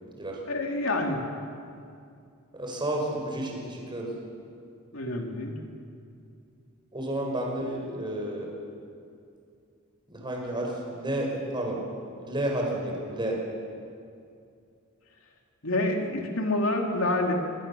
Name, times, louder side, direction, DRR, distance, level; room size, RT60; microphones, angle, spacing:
voice 1, 0.5-1.2 4.9-5.6 15.6-17.3, left 2 dB, 65° left, 2 dB, 3.2 m, -27 dB
voice 2, 2.5-4.1 6.9-8.5 10.1-11.8 12.2-13.4, right 1 dB, 20° right, 0 dB, 5.1 m, -31 dB
24.5 x 23.0 x 7.1 m, 2.4 s
head